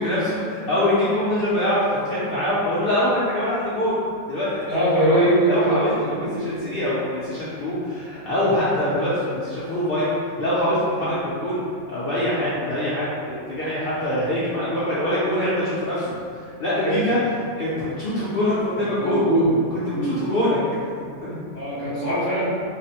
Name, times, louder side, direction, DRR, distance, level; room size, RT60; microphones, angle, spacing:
voice 1, 0.0-4.0 4.3-4.6 5.1-11.6 11.9-17.2 17.6-19.3 19.9-20.6 21.0-21.3, left 1 dB, 60° left, -10 dB, 0.6 m, -24 dB
voice 2, 4.7-6.6 8.4-8.5 8.9-9.0 10.9-11.0 16.8-17.2 19.0-19.6 19.9-20.1 21.5-22.5, right 1 dB, 40° right, -12 dB, 0.7 m, -22 dB
3.8 x 2.0 x 2.8 m, 2.2 s
omnidirectional pair, 1.5 m